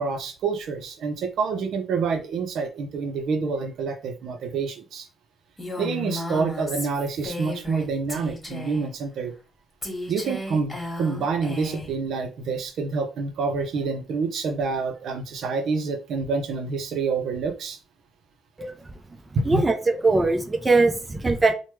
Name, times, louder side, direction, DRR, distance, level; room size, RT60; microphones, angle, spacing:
voice 1, 0.0-5.1 5.8-9.3 10.1-17.8 19.4-19.6, right 4 dB, 70° right, 7 dB, 0.5 m, -27 dB
Female speech woman speaking, 5.6-7.8 8.1-8.9 9.8-11.9, left 2 dB, 10° left, 1.3 m, -34 dB
voice 2, 19.5-21.5, right 3 dB, 20° right, 6 dB, 0.4 m, -21 dB
3.0 x 2.1 x 3.1 m, 0.34 s
cardioid pair, 90°, 0 cm